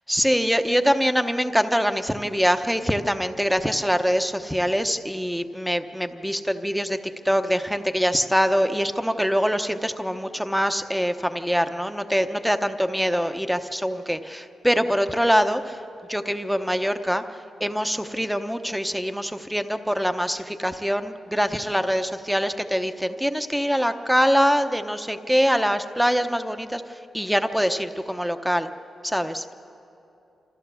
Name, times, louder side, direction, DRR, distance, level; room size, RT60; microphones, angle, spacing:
voice 1, 0.1-7.0 7.2-15.8 16.1-17.2 17.6-28.7 29.0-29.4, equal, ahead, 8 dB, 0.8 m, -24 dB
26.0 x 14.5 x 6.9 m, 2.8 s
cardioid pair, 100°, 0 cm